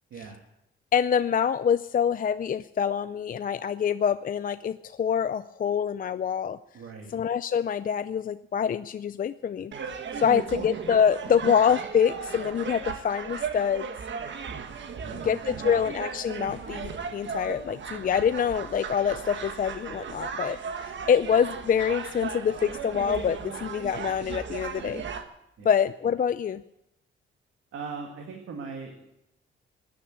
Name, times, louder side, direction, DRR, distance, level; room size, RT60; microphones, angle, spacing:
voice 1, 0.1-0.4 6.7-7.1 10.2-10.3 14.9-15.8 25.6-25.7 27.7-29.2, right 5 dB, 80° right, 3 dB, 2.2 m, -40 dB
voice 2, 0.9-6.6 7.1-13.9 15.2-20.6 21.1-25.0 25.6-26.6, left 7 dB, 40° left, 12 dB, 0.5 m, -26 dB
sound 1, 9.7-25.2, right 6 dB, 65° right, 1.6 m, -36 dB
16.5 x 10.0 x 8.4 m, 0.84 s
cardioid pair, 110°, 21 cm